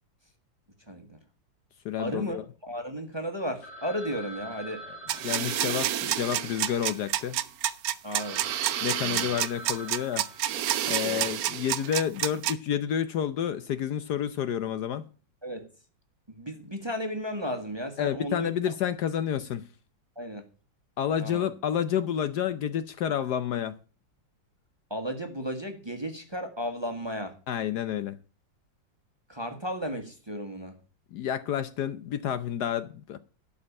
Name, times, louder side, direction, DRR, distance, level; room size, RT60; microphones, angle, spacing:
voice 1, 0.9-1.2 2.0-4.8 8.0-8.5 9.0-9.3 11.0-11.3 15.4-15.7 16.3-18.5 20.2-20.4 21.2-21.5 24.9-27.3 29.3-30.7, equal, 15° right, 1.3 m, -34 dB
voice 2, 1.8-2.4 5.2-7.4 8.8-10.3 10.9-15.1 18.0-19.7 21.0-23.8 27.5-28.2 31.1-33.2, left 9 dB, 70° left, 1.2 m, -29 dB
Telephone, 3.6-7.4 7.9-8.0 8.2-11.1, equal, 90° left, 2.8 m, -45 dB
sound 1, 5.1-12.5, right 11 dB, 65° right, 1.0 m, -29 dB
12.0 x 5.0 x 8.6 m
omnidirectional pair, 2.0 m